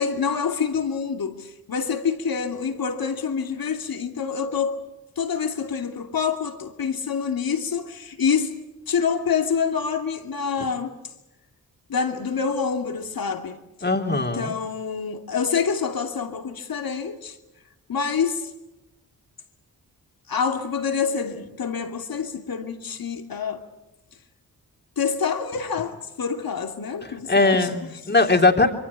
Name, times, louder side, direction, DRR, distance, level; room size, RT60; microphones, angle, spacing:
voice 1, 0.0-4.8 5.2-8.5 8.9-10.9 11.9-13.6 14.1-17.4 17.9-18.5 20.3-23.7 25.0-27.8, left 6 dB, 65° left, 2.8 m, -26 dB
voice 2, 13.8-14.5 27.3-28.7, left 3 dB, 25° left, 3.1 m, -20 dB
26.5 x 23.0 x 8.3 m
cardioid pair, 50°, 38 cm